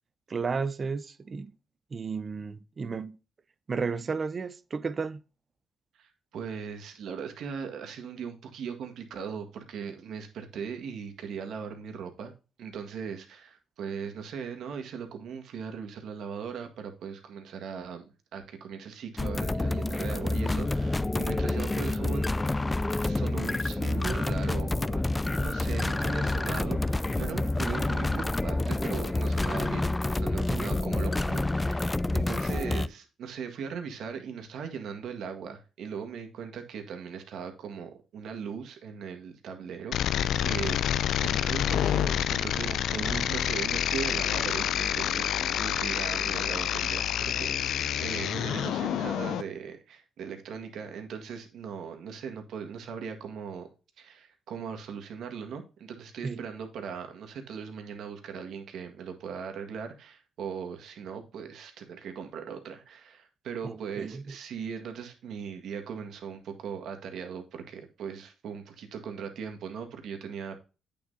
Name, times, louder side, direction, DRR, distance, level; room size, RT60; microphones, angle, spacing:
voice 1, 0.3-1.5 1.9-3.1 3.7-5.2 30.5-30.7 42.7-43.3 56.2-56.4 63.6-64.2, right 5 dB, 40° right, 0.7 m, -33 dB
voice 2, 6.0-12.3 12.6-18.0 18.3-22.3 23.0-25.0 25.4-40.8 41.2-47.6 48.0-53.7 54.0-70.6, right 6 dB, 75° right, 1.7 m, -39 dB
sound 1, 19.2-32.9, left 2 dB, 15° left, 0.4 m, -28 dB
sound 2, 39.9-49.4, left 10 dB, 75° left, 0.5 m, -28 dB
8.7 x 7.0 x 2.7 m
cardioid pair, 90°, 0 cm